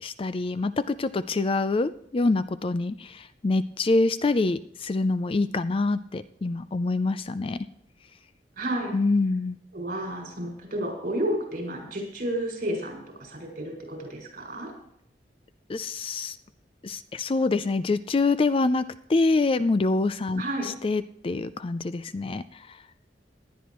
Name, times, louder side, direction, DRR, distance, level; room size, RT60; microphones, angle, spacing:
voice 1, 0.0-7.6 8.9-9.6 15.7-16.4 16.8-18.8 19.1-22.8, left 3 dB, 30° left, 14 dB, 0.4 m, -26 dB
voice 2, 8.6-9.0 9.7-14.7 20.4-20.7, right 1 dB, 50° right, 0 dB, 5.6 m, -31 dB
18.5 x 11.5 x 3.1 m, 0.72 s
head